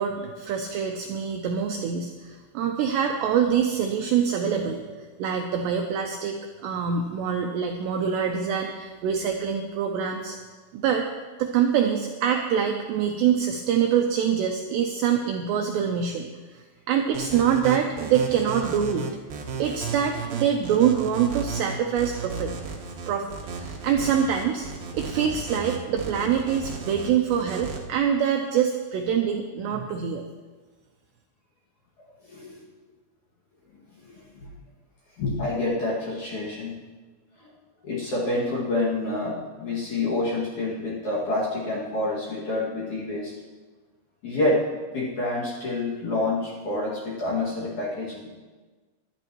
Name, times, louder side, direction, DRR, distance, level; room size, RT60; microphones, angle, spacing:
voice 1, 0.0-4.8 5.2-10.4 10.7-11.1 11.4-16.3 16.9-19.1 19.6-22.5 23.1-23.3 23.6-24.7 24.9-30.2, right 8 dB, 80° right, 3 dB, 2.5 m, -25 dB
sound 1, 17.1-27.8, right 5 dB, 60° right, 2.7 m, -34 dB
voice 2, 32.2-32.5 34.0-34.5 35.2-36.7 37.4-37.5 37.8-43.3 44.2-44.6 44.9-48.3, left 2 dB, 50° left, -5 dB, 2.8 m, -28 dB
23.0 x 12.0 x 3.1 m, 1.3 s
omnidirectional pair, 5.8 m